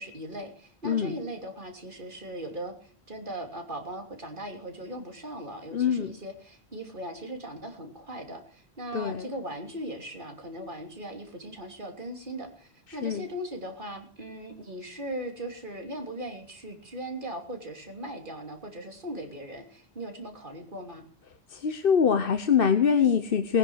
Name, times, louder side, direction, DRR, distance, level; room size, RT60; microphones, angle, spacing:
voice 1, 0.0-21.0, right 1 dB, 55° right, 4 dB, 3.2 m, -39 dB
voice 2, 0.8-1.1 5.7-6.1 8.9-9.3 13.0-13.2 21.5-23.6, left 7 dB, 60° left, 9 dB, 1.1 m, -24 dB
19.5 x 10.5 x 6.3 m, 0.43 s
omnidirectional pair, 1.1 m